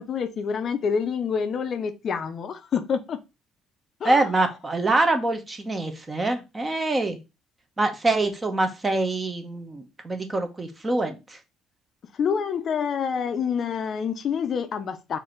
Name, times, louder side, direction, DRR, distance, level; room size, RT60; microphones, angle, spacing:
voice 1, 0.0-3.2 4.0-4.5 12.1-15.2, left 6 dB, 40° left, 0.5 m, -27 dB
voice 2, 4.0-7.2 7.8-11.4, right 2 dB, 20° right, 0.8 m, -25 dB
4.6 x 2.6 x 4.4 m
cardioid pair, 140°, 0 cm